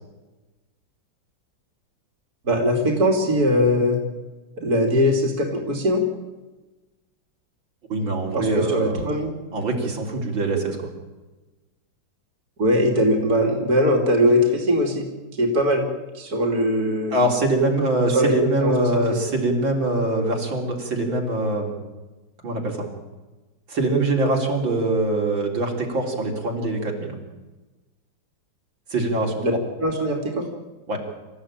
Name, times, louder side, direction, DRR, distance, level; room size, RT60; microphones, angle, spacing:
voice 1, 2.5-4.0 4.6-6.0 8.3-9.3 12.6-15.1 15.4-15.9 16.2-17.2 18.1-18.3 18.6-19.1 29.4-29.5 29.8-30.5, equal, 50° right, 1 dB, 3.7 m, -21 dB
voice 2, 7.9-9.1 9.5-10.9 17.1-21.7 22.4-22.9 23.7-27.2 28.9-29.4 30.9-31.0, right 2 dB, 80° right, 0 dB, 4.4 m, -23 dB
27.0 x 15.0 x 9.0 m, 1.2 s
omnidirectional pair, 2.1 m